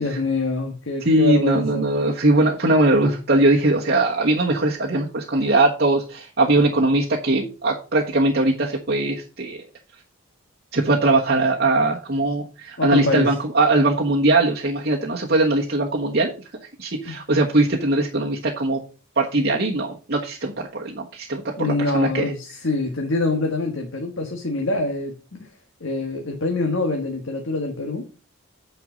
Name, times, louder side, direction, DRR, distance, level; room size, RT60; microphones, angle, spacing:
voice 1, 0.0-1.9 12.8-13.3 17.0-17.2 21.6-25.5 25.8-28.2, left 2 dB, 70° left, 1.7 m, -25 dB
voice 2, 1.0-9.6 10.7-16.3 16.8-18.8 19.2-22.3, right 2 dB, 50° right, 1.2 m, -20 dB
9.3 x 5.3 x 5.1 m
head